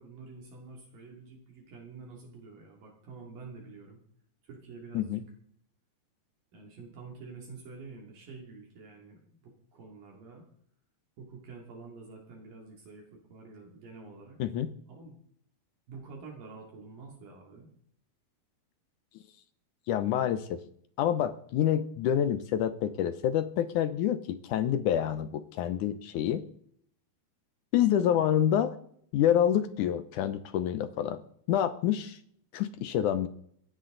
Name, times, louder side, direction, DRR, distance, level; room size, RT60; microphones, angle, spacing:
voice 1, 0.0-4.0 4.4-5.2 6.5-10.5 11.2-14.4 14.9-15.2 15.9-17.7, right 4 dB, 65° right, 0 dB, 4.4 m, -48 dB
voice 2, 19.9-20.6 21.0-26.4 27.7-28.8 29.1-31.2 31.5-32.2 32.5-33.3, left 10 dB, 70° left, 12 dB, 2.0 m, -27 dB
21.5 x 16.0 x 4.0 m, 0.66 s
omnidirectional pair, 4.4 m